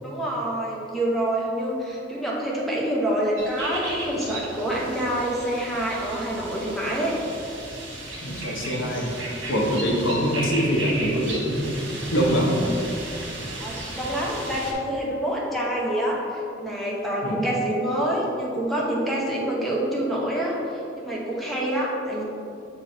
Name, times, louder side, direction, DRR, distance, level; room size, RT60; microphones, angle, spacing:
voice 1, 0.0-7.1 13.6-22.2, right 1 dB, ahead, -5 dB, 1.1 m, -27 dB
sound 1, 3.4-14.7, right 1 dB, 70° right, 1.6 m, -35 dB
voice 2, 8.2-9.1 9.5-11.8 12.1-12.6 17.2-17.4, equal, 90° left, -1 dB, 1.2 m, -24 dB
7.7 x 3.9 x 4.4 m, 2.7 s
head